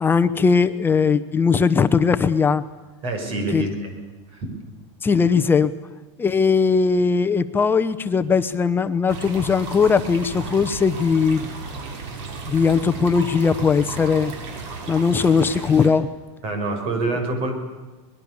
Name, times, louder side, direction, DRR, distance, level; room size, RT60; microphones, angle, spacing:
voice 1, 0.0-2.6 3.5-3.7 5.0-5.7 6.2-11.5 12.5-14.3 14.9-16.1, left 5 dB, 15° left, 10 dB, 0.8 m, -19 dB
voice 2, 3.0-3.9 4.3-4.5 16.4-17.5, right 2 dB, 40° right, 4 dB, 6.3 m, -26 dB
sound 1, 9.1-15.9, right 3 dB, 75° right, 6.4 m, -34 dB
25.0 x 21.0 x 7.1 m, 1.3 s
supercardioid pair, 155°, 15 cm